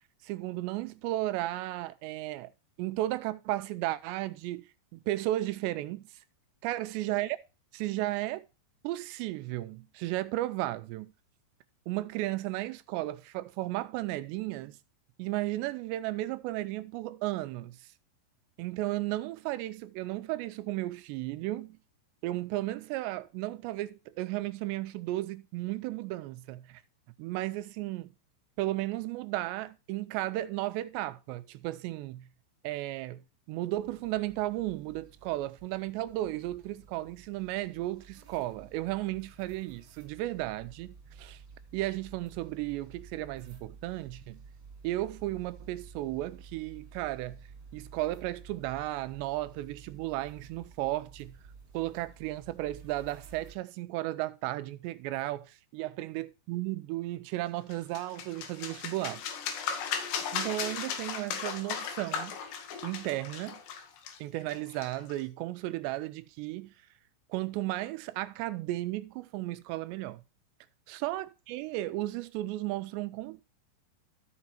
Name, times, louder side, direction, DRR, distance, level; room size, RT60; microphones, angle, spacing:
voice 1, 0.2-2.5 2.8-4.7 4.9-6.0 6.6-7.4 7.7-8.5 8.8-11.1 11.9-14.8 15.2-17.9 18.6-21.8 22.2-26.8 27.2-28.1 28.6-32.3 32.6-33.2 33.5-41.4 41.7-44.4 44.8-47.4 47.7-51.4 51.7-59.2 60.3-62.4 62.8-63.6 64.2-66.7 67.3-70.2 70.9-73.4, right 16 dB, 85° right, 2.9 m, -34 dB
sound 1, 33.7-53.5, right 5 dB, 30° right, 2.1 m, -52 dB
sound 2, 57.7-65.2, left 7 dB, 75° left, 3.5 m, -36 dB
13.5 x 5.1 x 4.3 m
omnidirectional pair, 5.0 m